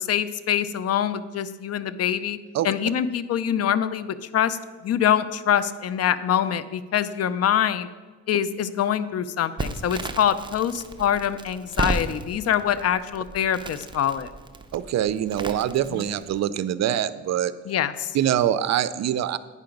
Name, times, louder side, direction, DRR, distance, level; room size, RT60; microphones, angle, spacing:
voice 1, 0.0-2.4 2.6-4.6 4.8-7.9 8.3-14.3 15.9-16.0 17.7-18.1, left 9 dB, 55° left, 14 dB, 0.5 m, -24 dB
Crackle, 9.6-16.4, right 3 dB, 15° right, 0.7 m, -34 dB
voice 2, 14.7-17.5 18.1-19.4, right 11 dB, 60° right, 15 dB, 0.5 m, -24 dB
9.6 x 5.8 x 5.2 m, 1.4 s
cardioid pair, 90°, 30 cm